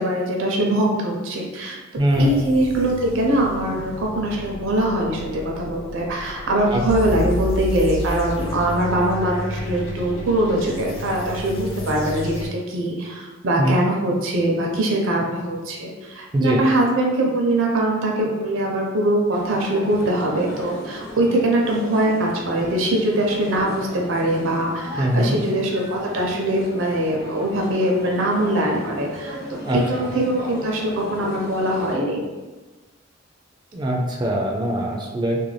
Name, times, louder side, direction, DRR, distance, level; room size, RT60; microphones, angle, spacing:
voice 1, 0.0-1.8 2.2-29.4 29.7-32.2, right 1 dB, 80° right, -1 dB, 0.6 m, -22 dB
voice 2, 2.0-2.3 6.7-6.8 13.6-13.8 16.3-16.6 25.0-25.4 29.6-30.1 33.7-35.4, equal, 25° right, 0 dB, 0.3 m, -21 dB
sound 1, 2.1-12.5, left 1 dB, 80° left, 0.5 m, -31 dB
sound 2, 19.3-32.0, left 1 dB, 45° left, 1.0 m, -36 dB
2.5 x 2.2 x 3.2 m, 1.2 s
head